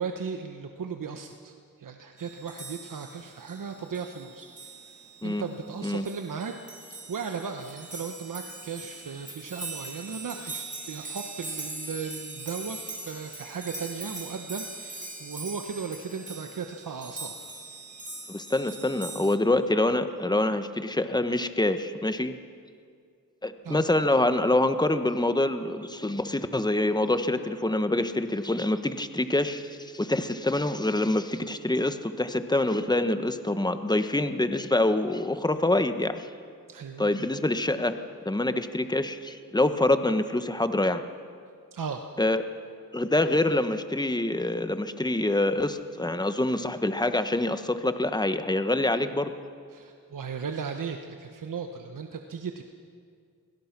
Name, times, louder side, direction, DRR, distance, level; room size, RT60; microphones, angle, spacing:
voice 1, 0.0-6.5 6.8-17.3 17.7-17.8 23.6-23.8 36.7-37.1 41.7-42.1 49.7-52.6, right 6 dB, 65° right, 5 dB, 1.3 m, -36 dB
sound 1, 2.2-19.4, right 2 dB, 20° right, 3.3 m, -41 dB
voice 2, 18.3-22.4 23.4-36.3 37.0-37.9 38.2-41.0 42.2-42.4 42.9-49.3, left 2 dB, 10° left, 9 dB, 1.3 m, -26 dB
24.5 x 17.0 x 6.1 m, 2.2 s
cardioid pair, 60°, 35 cm